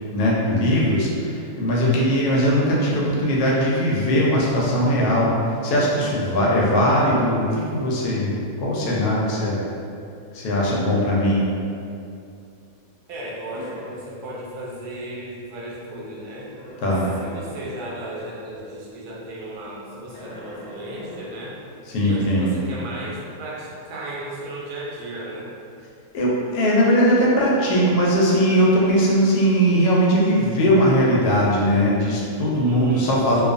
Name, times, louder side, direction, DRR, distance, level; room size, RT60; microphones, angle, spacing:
voice 1, 0.1-5.3 5.6-9.6 10.3-11.4 16.8-17.1 21.9-22.5 26.1-33.4, equal, 85° left, -5 dB, 1.1 m, -19 dB
sound 1, 13.1-14.0 16.2-18.7 20.1-21.4, equal, 35° left, 0.7 m, -41 dB
voice 2, 13.1-16.5 17.2-21.6 22.0-25.5 32.6-33.1, right 1 dB, 85° right, -4 dB, 1.1 m, -35 dB
2.6 x 2.3 x 2.4 m, 2.5 s
omnidirectional pair, 1.6 m